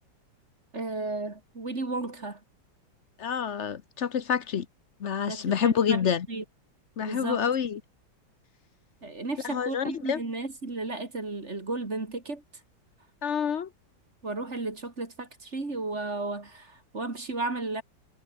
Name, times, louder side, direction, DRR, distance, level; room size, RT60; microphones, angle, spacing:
voice 1, 0.7-2.4 5.3-6.0 6.3-6.4 7.0-7.4 9.0-12.4 14.2-17.8, right 3 dB, 35° right, 3.1 m, -34 dB
voice 2, 3.2-4.7 5.0-6.3 7.0-7.8 9.4-10.2 13.2-13.7, left 7 dB, 45° left, 1.0 m, -27 dB
omnidirectional pair, 2.1 m